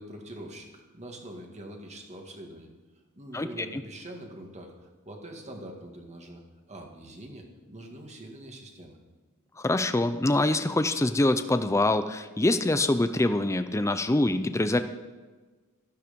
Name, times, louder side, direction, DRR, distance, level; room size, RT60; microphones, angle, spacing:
voice 1, 0.0-2.7 3.2-6.4 6.7-9.0, right 1 dB, 30° right, 1 dB, 2.1 m, -44 dB
voice 2, 3.3-3.8 9.6-14.8, left 2 dB, 15° left, 10 dB, 0.5 m, -25 dB
13.5 x 12.5 x 5.2 m, 1.3 s
head